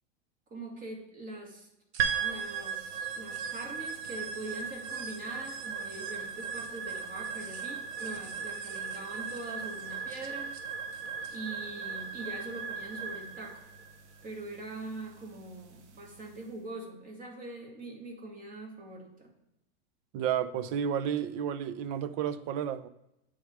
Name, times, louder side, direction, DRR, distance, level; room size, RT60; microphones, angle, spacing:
voice 1, 0.5-1.7 2.2-10.6 11.3-13.6 14.2-19.4, right 2 dB, 25° right, 0 dB, 2.2 m, -43 dB
sound 1, 1.9-11.4, right 6 dB, 65° right, 1.2 m, -51 dB
sound 2, 2.0-16.4, right 6 dB, 85° right, 1.1 m, -37 dB
voice 2, 20.1-22.9, right 8 dB, 45° right, 14 dB, 0.6 m, -31 dB
8.6 x 3.6 x 4.8 m, 0.88 s
hypercardioid pair, 120°, 34 cm